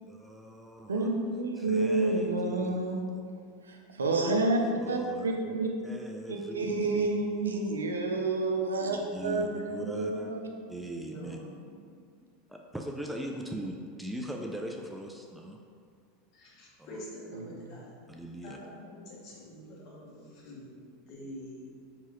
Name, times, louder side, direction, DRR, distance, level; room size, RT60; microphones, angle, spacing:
voice 1, 0.0-1.1 1.6-3.2 4.7-5.6 5.8-7.8 8.9-10.3 10.7-11.4 12.5-15.6 16.8-17.0 18.1-18.6, right 1 dB, 5° right, 1 dB, 0.3 m, -41 dB
voice 2, 0.9-3.1 3.7-4.6 4.9-5.7 6.3-10.5 17.3-17.8, right 2 dB, 85° right, 2 dB, 0.4 m, -29 dB
voice 3, 11.1-11.8 16.3-17.9 18.4-20.7 21.0-21.7, equal, 50° left, -5 dB, 1.2 m, -46 dB
4.5 x 2.9 x 3.0 m, 2.2 s
hypercardioid pair, 85°, 0 cm